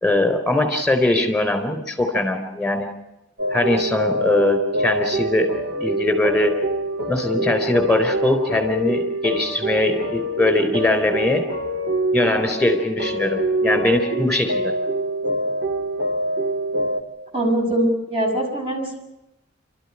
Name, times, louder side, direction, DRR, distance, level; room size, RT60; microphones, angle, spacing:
voice 1, 0.0-2.9 3.5-6.6 7.1-11.4 12.1-14.7, left 2 dB, 5° left, 6 dB, 4.1 m, -21 dB
sound 1, 3.4-17.0, right 1 dB, 65° right, 2.9 m, -25 dB
voice 2, 17.3-19.0, right 1 dB, 30° right, 1 dB, 6.3 m, -22 dB
27.5 x 13.5 x 10.0 m, 0.93 s
head